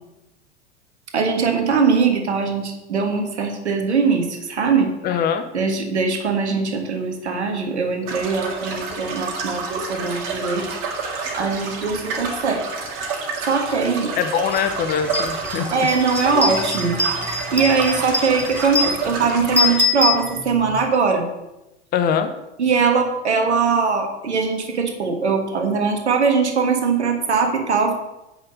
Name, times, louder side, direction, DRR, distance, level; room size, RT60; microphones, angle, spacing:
voice 1, 1.1-4.9 5.5-10.6 11.4-12.6 13.5-14.1 15.7-17.0 17.3-21.3 22.6-27.9, right 5 dB, 75° right, 4 dB, 1.5 m, -21 dB
voice 2, 5.0-5.5 14.2-15.9 21.9-22.3, left 7 dB, 30° left, 9 dB, 0.8 m, -22 dB
sound 1, 8.1-19.8, right 4 dB, 45° right, 2.1 m, -29 dB
sound 2, 14.5-14.6 15.0-20.8, left 2 dB, 5° left, 1.0 m, -24 dB
8.0 x 5.8 x 6.3 m, 0.95 s
figure-of-eight pair, 90°, 34 cm